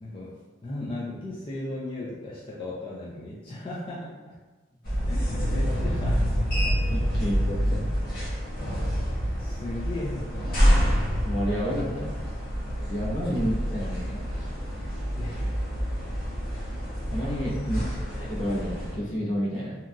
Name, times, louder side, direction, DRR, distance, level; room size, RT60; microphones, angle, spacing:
voice 1, 0.0-4.4 5.1-6.4 7.2-7.3 9.4-10.9 15.2-15.5 17.8-17.9, left 1 dB, 25° left, -6 dB, 0.3 m, -36 dB
sound 1, 4.8-19.0, equal, 50° left, 0.8 m, -27 dB
voice 2, 6.9-8.1 11.2-12.2 12.9-14.2 17.1-17.8 18.2-19.8, equal, 70° left, -7 dB, 1.0 m, -30 dB
2.9 x 2.2 x 2.5 m, 1.2 s
head